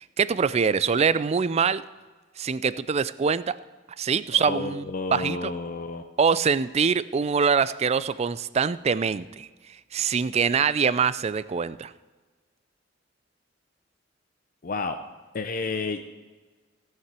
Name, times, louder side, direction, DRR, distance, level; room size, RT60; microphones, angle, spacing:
voice 1, 0.0-1.8 2.4-3.5 4.0-5.5 6.2-9.5 9.9-11.9, right 6 dB, 35° right, 17 dB, 0.4 m, -24 dB
voice 2, 4.5-6.0 14.6-15.0 15.3-16.0, left 3 dB, 45° left, 7 dB, 0.6 m, -30 dB
16.0 x 5.8 x 7.5 m, 1.3 s
head